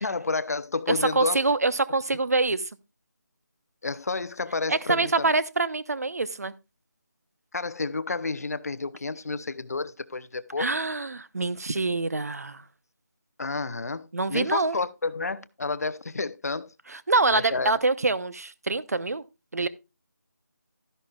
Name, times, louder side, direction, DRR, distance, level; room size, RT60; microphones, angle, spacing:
voice 1, 0.0-1.4 3.8-5.3 7.5-10.7 13.4-16.7 17.3-17.7, left 3 dB, 55° left, 0.7 m, -30 dB
voice 2, 0.9-2.6 4.7-6.5 10.6-12.6 14.1-14.8 16.9-19.2 19.5-19.7, right 3 dB, 55° right, 0.8 m, -25 dB
12.5 x 11.0 x 2.4 m
figure-of-eight pair, 175°, 10 cm